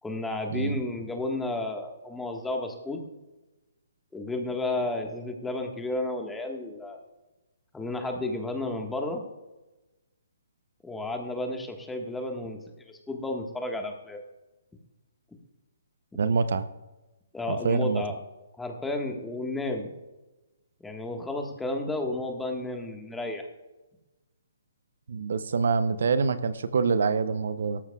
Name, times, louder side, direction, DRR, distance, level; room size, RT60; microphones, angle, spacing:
voice 1, 0.0-3.0 4.1-7.0 7.7-9.2 10.8-14.2 17.3-18.2 18.6-19.9 20.8-23.5, left 2 dB, 5° left, 3 dB, 1.5 m, -32 dB
voice 2, 16.2-16.7 17.5-18.0 25.1-27.8, right 5 dB, 65° right, 13 dB, 0.7 m, -25 dB
17.0 x 13.5 x 2.4 m, 1.1 s
hypercardioid pair, 140°, 0 cm